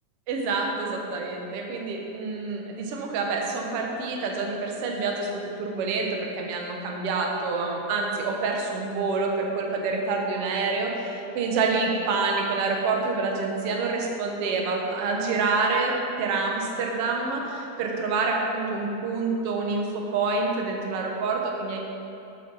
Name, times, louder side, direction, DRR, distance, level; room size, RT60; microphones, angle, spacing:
voice 1, 0.3-5.3 5.6-21.8, right 4 dB, 60° right, 0 dB, 1.6 m, -27 dB
12.0 x 7.4 x 4.0 m, 2.8 s
omnidirectional pair, 3.7 m